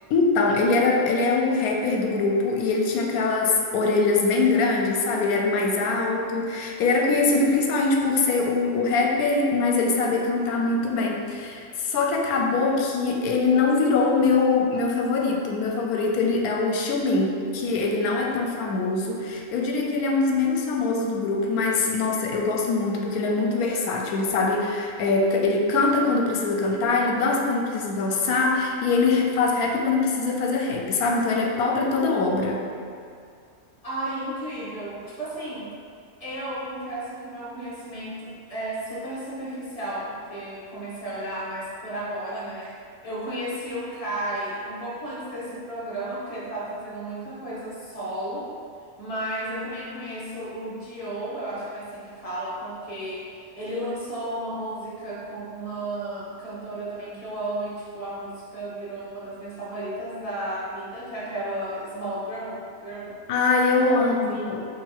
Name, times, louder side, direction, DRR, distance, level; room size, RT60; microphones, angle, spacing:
voice 1, 0.1-32.6 63.3-64.7, left 3 dB, 85° left, 0 dB, 1.1 m, -23 dB
voice 2, 33.8-35.7 36.2-42.8 43.0-48.5 49.0-63.2 63.7-64.5, right 1 dB, 25° left, -8 dB, 1.1 m, -33 dB
3.7 x 3.2 x 4.5 m, 2.2 s
omnidirectional pair, 1.6 m